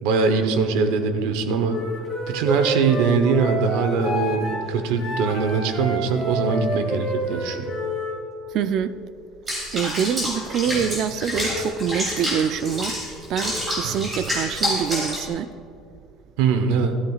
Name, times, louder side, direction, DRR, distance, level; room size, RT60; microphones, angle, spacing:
voice 1, 0.0-1.8 2.3-7.7 13.8-14.0 16.4-16.9, right 5 dB, 85° right, 7 dB, 0.9 m, -22 dB
Wind instrument woodwind instrument, 1.7-8.2, right 1 dB, 15° left, 2.6 m, -29 dB
voice 2, 8.5-9.0 9.7-13.0 13.3-15.5, right 8 dB, 45° right, 13 dB, 0.3 m, -25 dB
Water / Bathtub (filling or washing), 9.5-15.3, equal, 20° right, 2.9 m, -28 dB
13.5 x 12.5 x 2.4 m, 2.5 s
cardioid pair, 175°, 0 cm